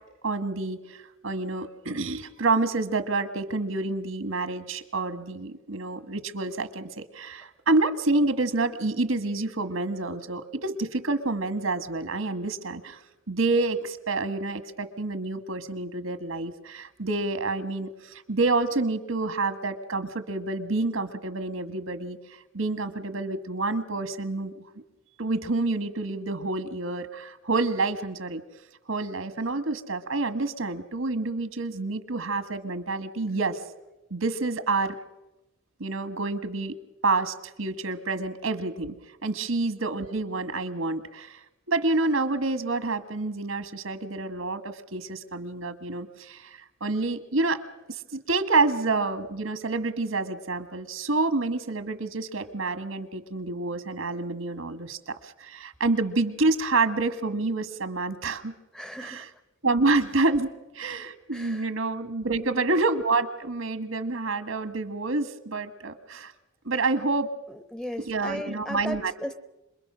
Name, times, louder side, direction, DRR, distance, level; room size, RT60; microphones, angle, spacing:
voice 1, 0.2-1.0 1.2-13.0 13.3-22.2 22.5-24.5 25.2-28.4 28.9-33.6 34.1-35.0 35.8-36.8 37.0-38.9 39.2-41.4 41.7-47.6 47.9-58.5 59.0-59.3 59.6-66.3 66.6-67.3 68.1-69.1, right 3 dB, 80° right, 10 dB, 1.5 m, -28 dB
voice 2, 58.7-59.3 61.3-61.7 62.4-62.7 67.5-69.3, equal, 5° left, 11 dB, 0.7 m, -37 dB
26.5 x 22.0 x 6.2 m, 0.99 s
head